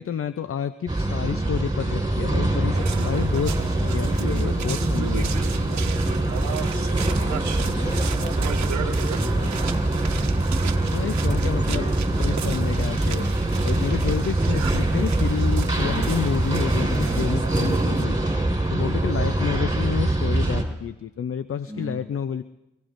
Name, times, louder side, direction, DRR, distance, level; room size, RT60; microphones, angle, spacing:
voice 1, 0.0-5.3 10.9-11.9 12.2-13.3 13.6-18.2 18.7-22.4, left 8 dB, 50° left, 12 dB, 0.6 m, -29 dB
sound 1, 0.9-20.6, right 1 dB, 15° right, 4.6 m, -23 dB
voice 2, 1.2-1.5 4.8-4.9 6.0-9.6 10.2-10.7 11.5-12.0 15.0-15.3 15.8-16.1 18.1-18.5 19.4-19.8 21.7-22.0, equal, 20° left, 0 dB, 6.1 m, -37 dB
sound 2, 2.7-18.0, right 8 dB, 70° right, 1.0 m, -36 dB
27.0 x 17.0 x 2.6 m, 1.0 s
supercardioid pair, 45°, 29 cm